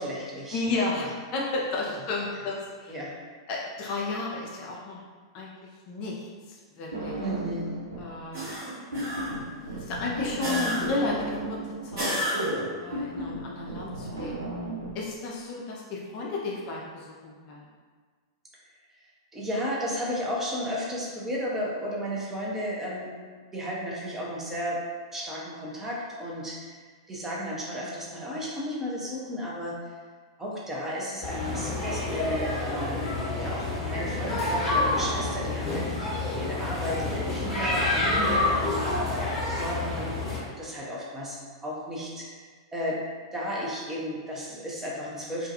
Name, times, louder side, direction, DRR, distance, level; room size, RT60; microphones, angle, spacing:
voice 1, 0.0-0.6 1.0-1.1 2.9-3.1 7.2-7.7 19.3-23.1 23.5-24.8 25.1-26.8 27.1-29.9 30.4-33.1 33.4-38.8 39.6-42.4 42.7-43.0 43.3-45.5, equal, 15° right, -5 dB, 0.6 m, -34 dB
voice 2, 0.5-1.1 1.3-3.0 3.5-5.0 5.3-5.5 5.9-7.2 8.0-8.7 9.1-9.2 9.7-12.2 12.8-14.4 14.9-17.6 38.1-38.5, left 3 dB, 40° left, -3 dB, 0.4 m, -33 dB
sound 1, 6.9-8.2 8.4-14.9, right 1 dB, 80° right, 0.5 m, -35 dB
sound 2, 8.3-9.5 10.4-11.1 12.0-12.8, equal, 55° right, 1.0 m, -30 dB
sound 3, 31.2-40.4, left 2 dB, 15° left, 0.9 m, -28 dB
2.5 x 2.3 x 2.7 m, 1.5 s
figure-of-eight pair, 100°, 2 cm